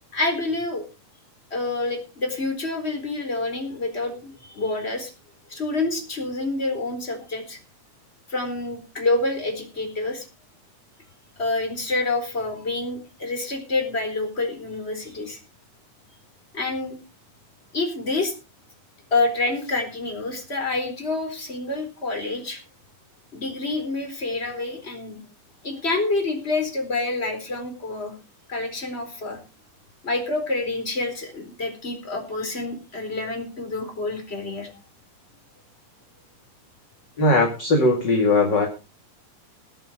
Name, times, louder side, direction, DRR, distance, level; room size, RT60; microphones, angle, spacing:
voice 1, 0.1-0.9 1.5-5.1 5.5-7.6 8.3-10.2 11.4-15.4 16.5-17.0 17.7-18.3 19.1-22.6 23.3-25.2 25.6-28.1 28.5-29.4 30.0-34.7, left 2 dB, 20° left, 4 dB, 4.3 m, -27 dB
voice 2, 37.2-38.7, left 2 dB, 35° left, 1 dB, 2.9 m, -19 dB
20.5 x 7.6 x 5.1 m, 0.31 s
omnidirectional pair, 3.7 m